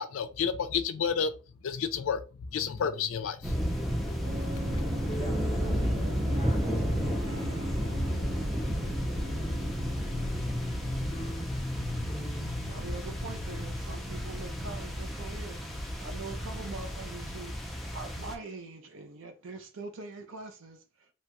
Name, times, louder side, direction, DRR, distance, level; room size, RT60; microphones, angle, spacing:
voice 1, 0.0-1.3 1.6-2.2 2.5-3.5, left 6 dB, 70° left, 0.4 m, -30 dB
sound 1, 2.5-3.1 3.4-8.5 8.8-14.7, left 2 dB, 45° left, 0.8 m, -42 dB
sound 2, 3.4-18.4, equal, ahead, 0.5 m, -32 dB
sound 3, 4.2-11.8, equal, 85° right, 0.9 m, -39 dB
voice 2, 5.2-6.0 6.3-7.8 9.0-9.6, right 1 dB, 30° right, 1.0 m, -49 dB
voice 3, 12.7-21.1, right 3 dB, 65° right, 0.5 m, -43 dB
2.8 x 2.2 x 2.9 m
head